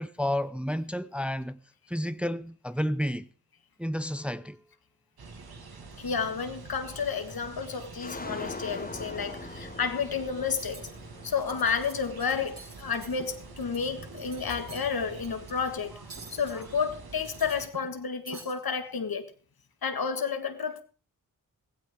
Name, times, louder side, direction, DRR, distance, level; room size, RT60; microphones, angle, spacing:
voice 1, 0.0-1.6 1.9-3.3 3.8-4.6, equal, 5° right, 0.6 m, -31 dB
sound 1, 5.2-17.7, right 4 dB, 90° right, 2.0 m, -46 dB
sound 2, 5.9-6.3 6.8-7.4 7.7-13.2 13.4-14.6, left 3 dB, 25° left, 1.1 m, -44 dB
voice 2, 6.0-10.9 11.2-15.9 16.3-19.3 19.8-20.8, left 6 dB, 75° left, 1.8 m, -31 dB
Cutlery silverware, 10.5-10.9 11.3-11.9 12.2-13.8 14.1-14.9 15.2-15.5 16.1-16.7 17.1-18.0 18.3-18.5, right 3 dB, 65° right, 7.4 m, -47 dB
16.0 x 16.0 x 3.6 m
cardioid pair, 55°, 36 cm